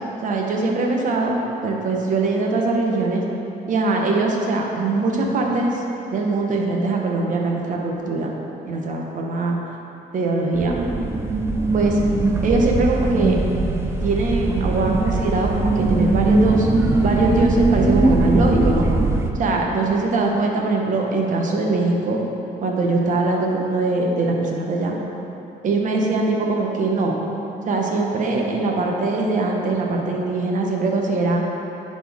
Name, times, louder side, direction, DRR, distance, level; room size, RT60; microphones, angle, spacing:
voice 1, 0.2-3.2 3.7-5.8 6.1-8.3 8.6-9.6 10.1-10.7 11.7-12.0 12.4-13.4 14.0-18.9 19.3-22.2 22.6-25.0 25.6-27.2 27.7-31.4, right 3 dB, 50° right, 0 dB, 1.1 m, -22 dB
sound 1, 10.5-19.3, right 2 dB, 15° right, 0.5 m, -20 dB
10.0 x 4.3 x 3.6 m, 2.9 s
cardioid pair, 110°, 17 cm